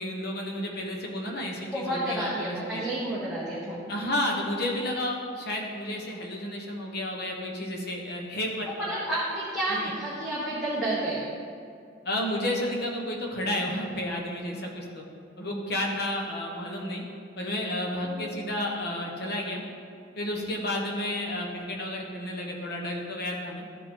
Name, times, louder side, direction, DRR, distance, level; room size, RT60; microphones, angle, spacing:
voice 1, 0.0-2.8 3.9-9.0 9.7-9.9 12.0-15.0 15.4-17.0 17.4-19.6 20.2-23.6, left 1 dB, 55° left, 0 dB, 1.2 m, -31 dB
voice 2, 1.7-3.8 8.8-11.2 18.0-18.2, right 1 dB, ahead, -10 dB, 1.2 m, -30 dB
13.5 x 4.9 x 3.8 m, 2.4 s
head